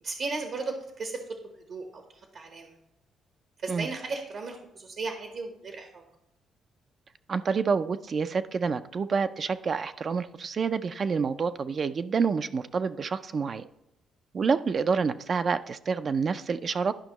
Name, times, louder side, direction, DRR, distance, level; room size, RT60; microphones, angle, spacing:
voice 1, 0.0-2.7 3.6-6.0 13.2-13.4, right 3 dB, 65° right, 4 dB, 1.0 m, -36 dB
voice 2, 7.3-13.6 14.3-16.9, right 5 dB, 45° right, 11 dB, 0.4 m, -28 dB
11.0 x 5.2 x 3.0 m, 0.84 s
cardioid pair, 90°, 0 cm